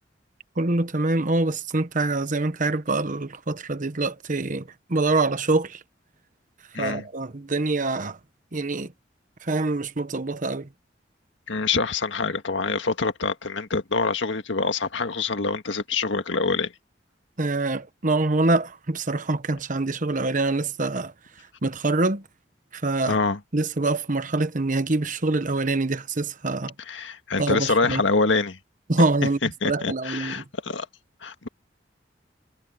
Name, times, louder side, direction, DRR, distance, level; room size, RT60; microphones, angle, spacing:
voice 1, 0.6-5.8 6.8-8.2 8.5-8.9 9.4-10.7 17.4-21.1 21.6-22.2 22.7-23.2 23.5-26.7 27.4-28.0 28.9-29.4 29.6-30.4, right 2 dB, 45° right, 1.1 m, -25 dB
voice 2, 6.7-7.0 11.5-16.7 23.1-23.4 26.9-28.6 29.4-30.9 31.2-31.5, left 4 dB, 85° left, 1.7 m, -25 dB
head